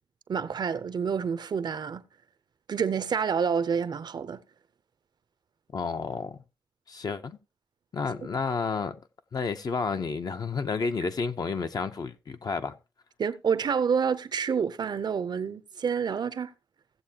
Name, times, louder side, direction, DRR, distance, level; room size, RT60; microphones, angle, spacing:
voice 1, 0.3-2.0 2.7-4.4 13.2-16.5, right 6 dB, 60° right, 0.6 m, -28 dB
voice 2, 5.7-6.4 6.9-7.4 7.9-9.0 9.3-12.8, left 5 dB, 50° left, 0.7 m, -31 dB
16.5 x 7.5 x 2.9 m
wide cardioid pair, 160°, 8 cm